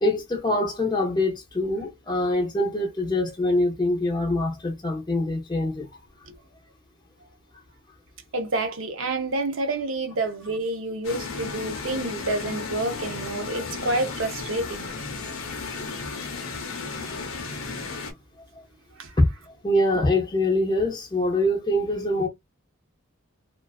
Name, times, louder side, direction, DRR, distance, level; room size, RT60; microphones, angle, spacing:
voice 1, 0.0-6.0 18.5-18.6 19.2-22.3, left 1 dB, 20° left, 0.5 m, -24 dB
voice 2, 8.3-14.8 19.0-19.1, right 2 dB, 70° right, 0.7 m, -28 dB
sound 1, 11.0-18.1, left 4 dB, 90° left, 0.7 m, -34 dB
2.4 x 2.3 x 2.3 m
head